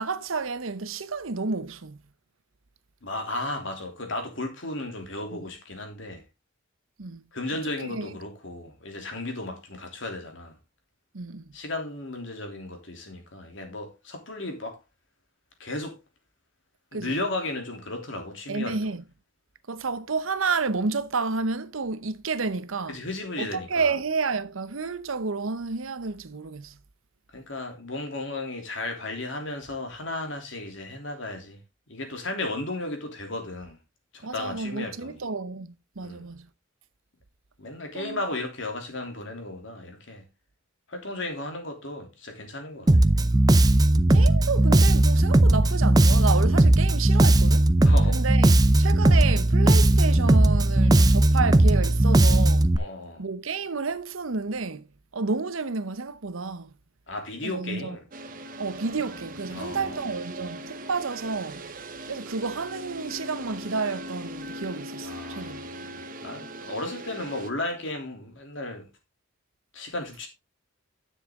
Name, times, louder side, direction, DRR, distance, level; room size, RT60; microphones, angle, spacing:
voice 1, 0.0-2.0 5.3-5.4 7.0-7.2 7.8-8.1 11.1-11.5 16.9-17.2 18.5-19.0 19.7-23.0 23.4-26.8 34.2-36.5 37.9-38.2 44.1-47.7 48.1-52.7 53.2-54.9 55.1-56.7 57.4-58.0 58.6-61.6 62.1-65.7, right 4 dB, 80° right, 0.9 m, -30 dB
voice 2, 3.0-6.2 7.3-10.6 11.5-14.8 15.6-16.0 16.9-18.8 22.9-23.9 27.3-31.6 31.9-33.8 34.1-35.2 36.0-36.3 37.6-40.2 40.9-42.9 47.8-48.2 52.8-53.2 57.1-58.0 59.5-60.1 65.0-68.9 69.7-70.3, left 2 dB, 65° left, 3.0 m, -34 dB
Bass guitar, 42.9-52.8, right 1 dB, 20° right, 0.5 m, -18 dB
sound 1, 58.1-67.5, right 1 dB, 45° right, 1.1 m, -39 dB
10.0 x 7.4 x 3.7 m
head